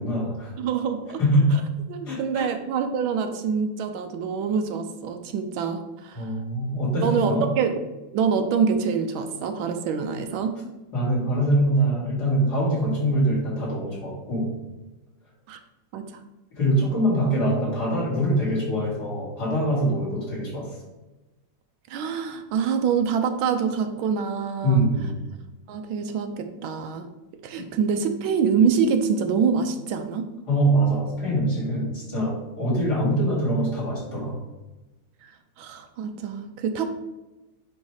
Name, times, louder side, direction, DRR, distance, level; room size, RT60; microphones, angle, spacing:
voice 1, 0.0-0.5 1.2-1.6 2.0-2.5 6.1-7.5 10.9-14.5 16.5-20.8 24.6-25.2 27.6-27.7 30.5-34.4, right 1 dB, 50° left, -7 dB, 3.3 m, -24 dB
voice 2, 0.6-1.2 1.9-6.3 7.0-7.8 8.1-10.6 15.5-15.6 15.9-16.0 21.9-24.9 25.7-27.1 27.4-30.3 35.2-36.9, right 6 dB, 75° right, 7 dB, 1.4 m, -25 dB
9.4 x 3.2 x 4.7 m, 1.1 s
omnidirectional pair, 2.3 m